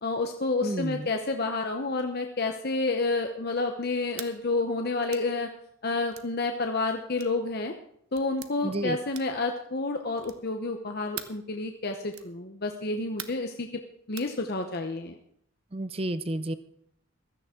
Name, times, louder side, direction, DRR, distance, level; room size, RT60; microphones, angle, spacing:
voice 1, 0.0-5.5 5.8-7.7 8.1-13.7 14.1-15.2, left 3 dB, 45° left, 4 dB, 0.9 m, -29 dB
voice 2, 0.6-1.1 8.6-9.0 15.7-16.5, right 1 dB, 25° right, 13 dB, 0.6 m, -31 dB
sound 1, 4.1-4.3 5.1-5.3 6.1-6.3 7.2-7.4 8.1-8.5 9.1-9.4 10.2-10.5 11.1-11.4 12.1-12.3 13.2-13.5 14.2-14.3, right 10 dB, 75° right, 1.0 m, -42 dB
16.0 x 14.0 x 3.7 m, 0.70 s
head